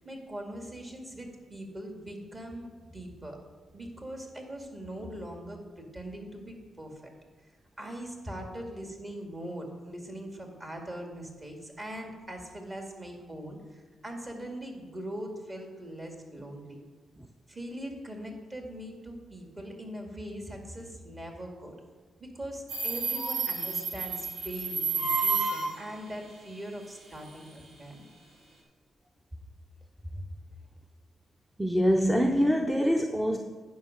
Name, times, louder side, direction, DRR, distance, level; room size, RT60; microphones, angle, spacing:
voice 1, 0.0-3.4 3.7-7.1 7.8-16.8 17.5-21.7 22.2-28.0 30.0-30.2, right 1 dB, 30° right, 2 dB, 2.0 m, -41 dB
Subway metro underground, 22.7-25.8, right 4 dB, 80° right, 2.2 m, -30 dB
voice 2, 31.6-33.4, equal, 5° right, 4 dB, 0.6 m, -24 dB
9.3 x 5.3 x 6.3 m, 1.5 s
cardioid pair, 90°, 0 cm